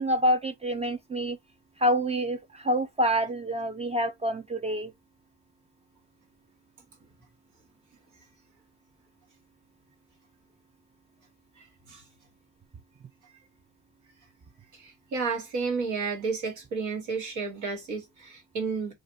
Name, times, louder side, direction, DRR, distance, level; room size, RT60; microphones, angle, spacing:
voice 1, 0.0-1.4 1.8-4.9, equal, 20° right, 0.4 m, -27 dB
voice 2, 11.6-12.0 14.7-18.9, right 4 dB, 85° right, 1.4 m, -32 dB
2.5 x 2.1 x 3.9 m
cardioid pair, 90°, 30 cm